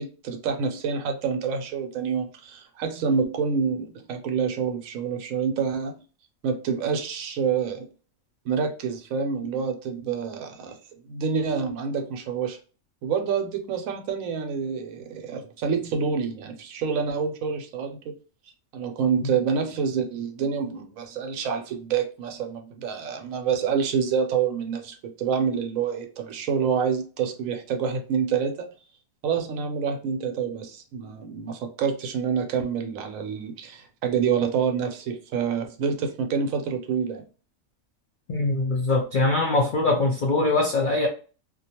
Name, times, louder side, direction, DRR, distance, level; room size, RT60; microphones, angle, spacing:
voice 1, 0.0-5.9 6.4-7.8 8.5-10.8 11.1-12.6 13.0-18.2 18.7-28.7 29.2-37.2, right 6 dB, 75° right, 5 dB, 1.0 m, -27 dB
voice 2, 38.3-41.1, left 2 dB, 75° left, 0 dB, 0.4 m, -22 dB
2.4 x 2.2 x 2.8 m, 0.36 s
omnidirectional pair, 1.4 m